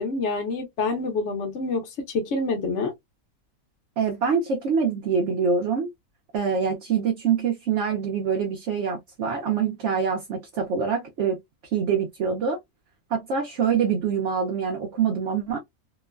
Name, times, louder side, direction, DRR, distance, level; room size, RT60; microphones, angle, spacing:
voice 1, 0.0-2.9, left 3 dB, 55° left, 1.0 m, -27 dB
voice 2, 4.0-5.9 6.3-11.4 11.7-12.6 13.1-15.6, right 6 dB, 60° right, 0.9 m, -25 dB
3.0 x 2.2 x 2.3 m
omnidirectional pair, 1.5 m